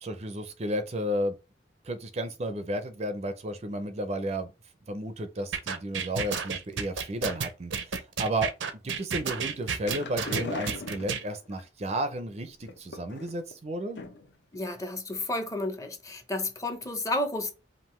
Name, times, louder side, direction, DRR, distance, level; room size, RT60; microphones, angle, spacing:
voice 1, 0.0-1.3 1.8-4.5 4.9-8.5 8.8-14.0, right 1 dB, 35° right, 0.5 m, -32 dB
sound 1, 5.5-11.2, right 6 dB, 85° right, 0.7 m, -31 dB
sound 2, 9.5-11.6 12.6-13.5 13.9-14.4 14.7-14.8 15.1-15.2, left 3 dB, 70° left, 0.7 m, -39 dB
voice 2, 14.5-17.5, left 2 dB, 15° left, 0.6 m, -31 dB
5.4 x 2.5 x 3.1 m
head